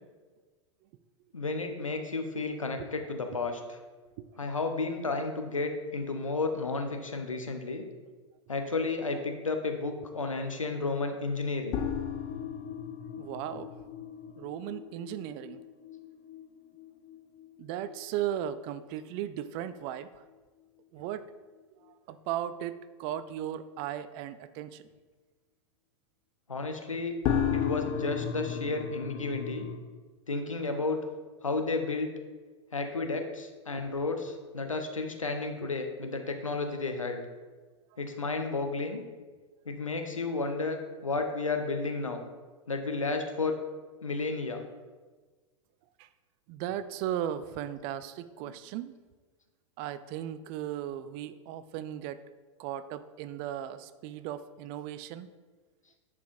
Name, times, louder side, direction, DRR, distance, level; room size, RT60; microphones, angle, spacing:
voice 1, 1.3-3.8 4.4-7.8 8.5-11.9 26.5-27.2 27.5-29.7 30.3-31.0 31.4-32.2 32.7-37.2 38.0-39.0 39.7-40.8 41.0-42.2 42.7-43.6 44.0-44.6 48.4-48.5, left 3 dB, 85° left, 5 dB, 0.9 m, -32 dB
sound 1, 11.7-18.3 18.6-18.7 19.1-19.2 27.2-29.8, left 8 dB, 35° left, 0.7 m, -35 dB
voice 2, 13.2-13.7 14.4-15.6 17.6-20.1 20.9-21.2 21.7-24.8 46.0-46.1 46.5-48.9 49.8-52.2 52.6-55.3, right 11 dB, 35° right, 13 dB, 0.3 m, -36 dB
11.0 x 4.9 x 2.5 m, 1.3 s
figure-of-eight pair, 95°, 16 cm